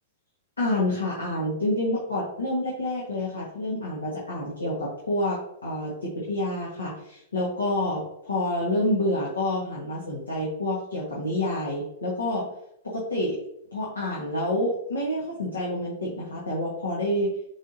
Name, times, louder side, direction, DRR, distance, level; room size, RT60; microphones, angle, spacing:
voice 1, 0.6-12.5 12.8-13.4 13.7-17.4, left 1 dB, 85° left, -4 dB, 1.7 m, -28 dB
9.0 x 3.6 x 2.9 m, 0.78 s
hypercardioid pair, 110°, 0 cm